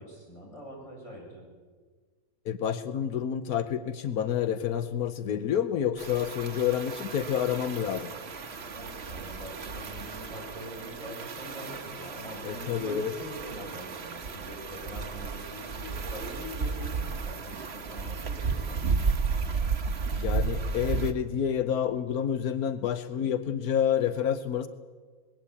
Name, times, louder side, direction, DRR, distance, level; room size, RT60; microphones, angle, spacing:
voice 1, 0.0-1.4 8.6-19.0, equal, 20° left, -3 dB, 8.0 m, -43 dB
voice 2, 2.4-8.1 12.4-13.1 20.1-24.7, left 9 dB, 90° left, 10 dB, 1.4 m, -29 dB
sound 1, 6.0-21.1, right 5 dB, 45° right, 1.4 m, -33 dB
21.0 x 17.0 x 8.4 m, 1.5 s
omnidirectional pair, 1.5 m